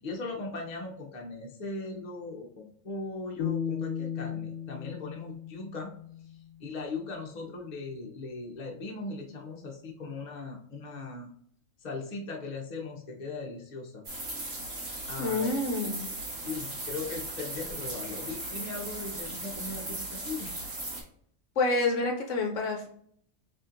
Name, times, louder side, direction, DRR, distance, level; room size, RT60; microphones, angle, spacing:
voice 1, 0.0-5.9 6.2-11.3 11.8-14.0 15.1-15.5 16.4-20.5, left 3 dB, 40° left, -1 dB, 0.9 m, -39 dB
sound 1, 3.4-6.5, left 8 dB, 90° left, 1.1 m, -35 dB
sound 2, 14.1-21.0, right 2 dB, 65° right, 1.8 m, -37 dB
voice 2, 15.2-16.1 21.6-22.9, left 2 dB, 70° left, 1 dB, 1.0 m, -28 dB
4.2 x 3.5 x 2.5 m, 0.63 s
omnidirectional pair, 1.4 m